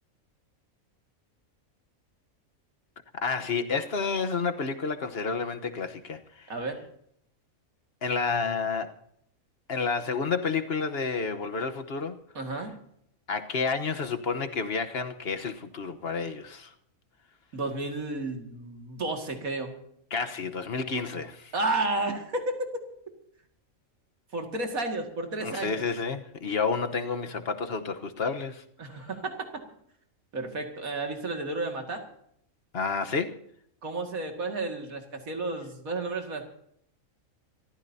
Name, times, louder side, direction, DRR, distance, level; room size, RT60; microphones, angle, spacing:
voice 1, 3.2-6.5 8.0-8.9 9.7-12.2 13.3-16.7 20.1-21.5 25.4-28.6 28.9-29.1 32.7-33.4, left 5 dB, 50° left, 1.4 m, -30 dB
voice 2, 6.5-6.8 12.3-12.7 17.5-19.7 21.5-22.8 24.3-25.8 28.8-29.6 30.3-32.0 33.8-36.5, right 2 dB, 85° right, 2.7 m, -32 dB
26.5 x 14.5 x 2.8 m
omnidirectional pair, 1.4 m